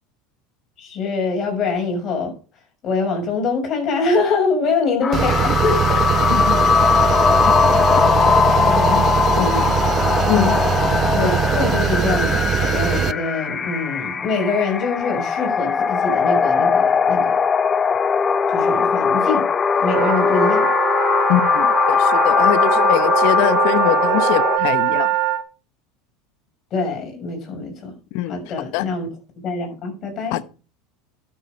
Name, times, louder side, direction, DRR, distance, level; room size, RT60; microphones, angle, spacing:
voice 1, 0.8-2.3 2.8-6.2 6.6-6.8 7.6-7.7 8.2-9.0 9.4-9.7 10.3-17.4 18.5-19.4 19.8-20.7 26.7-27.9 28.3-29.1 29.4-30.4, left 3 dB, 45° left, 6.2 m, -24 dB
sound 1, 5.0-24.6, left 6 dB, 30° left, 0.7 m, -19 dB
sound 2, 5.1-13.1, right 10 dB, 40° right, 0.5 m, -21 dB
voice 2, 9.4-9.7 10.3-10.6 21.3-25.1 28.1-28.9 30.3-30.4, left 15 dB, 65° left, 0.9 m, -23 dB
sound 3, 19.8-25.4, right 16 dB, 65° right, 1.4 m, -22 dB
12.0 x 7.3 x 5.1 m
hypercardioid pair, 95°, 0 cm